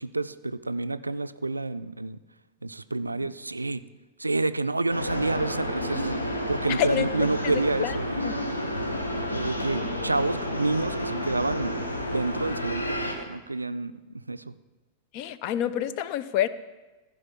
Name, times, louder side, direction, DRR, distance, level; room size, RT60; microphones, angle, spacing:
voice 1, 0.0-2.2 2.6-3.8 4.2-8.1 9.3-14.5, right 2 dB, 80° right, 13 dB, 0.3 m, -29 dB
sound 1, 4.9-13.1, equal, 80° left, 1.2 m, -30 dB
voice 2, 6.7-7.1 7.4-8.0 8.2-8.4 15.1-16.5, left 11 dB, 45° left, 14 dB, 0.5 m, -28 dB
14.5 x 5.1 x 5.7 m, 1.2 s
figure-of-eight pair, 90°, 0 cm